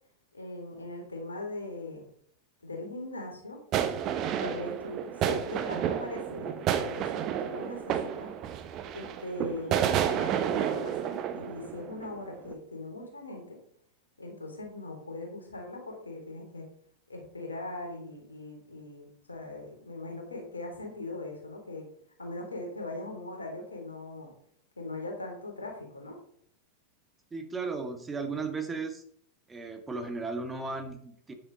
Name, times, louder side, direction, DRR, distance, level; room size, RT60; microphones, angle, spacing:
voice 1, 0.3-2.1 2.6-3.6 4.4-8.3 8.9-13.6 14.2-16.7 17.1-21.9 22.2-24.3 24.8-26.1, left 2 dB, 75° left, 1 dB, 3.4 m, -40 dB
sound 1, 3.7-12.2 12.5-12.6, right 9 dB, 35° right, 1.1 m, -31 dB
voice 2, 27.3-29.0 29.5-31.3, right 4 dB, 15° right, 5 dB, 1.8 m, -35 dB
9.9 x 8.8 x 4.1 m, 0.63 s
figure-of-eight pair, 90°, 0 cm